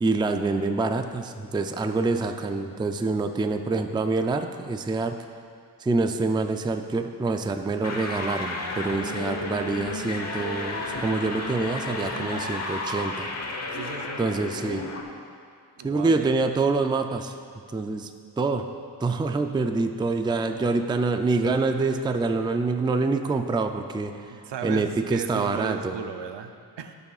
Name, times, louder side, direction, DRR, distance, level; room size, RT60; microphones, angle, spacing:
voice 1, 0.0-5.1 5.8-13.3 14.2-14.9 15.8-17.3 17.7-18.1 18.4-18.7 19.0-24.3 24.6-26.0, right 3 dB, 10° right, 7 dB, 0.3 m, -26 dB
voice 2, 2.4-3.0 12.0-12.6 13.7-14.2 15.8-16.3 20.2-20.6 24.3-26.9, right 7 dB, 85° right, 6 dB, 0.7 m, -37 dB
sound 1, 7.8-15.0, left 2 dB, 40° left, 0.9 m, -32 dB
16.0 x 6.9 x 2.4 m, 2.2 s
wide cardioid pair, 130°, 41 cm